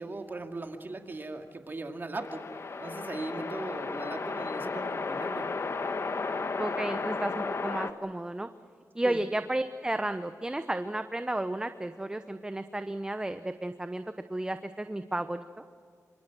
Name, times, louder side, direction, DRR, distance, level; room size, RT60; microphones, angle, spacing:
voice 1, 0.0-2.4 2.8-5.5 9.0-9.2, right 2 dB, 35° right, 4 dB, 2.4 m, -38 dB
sound 1, 2.2-7.9, left 4 dB, 50° left, 1.5 m, -34 dB
voice 2, 6.6-8.5 8.9-14.0 14.3-15.6, right 1 dB, 15° right, 9 dB, 0.9 m, -33 dB
27.0 x 26.0 x 6.2 m, 2.1 s
wide cardioid pair, 100°, 6 cm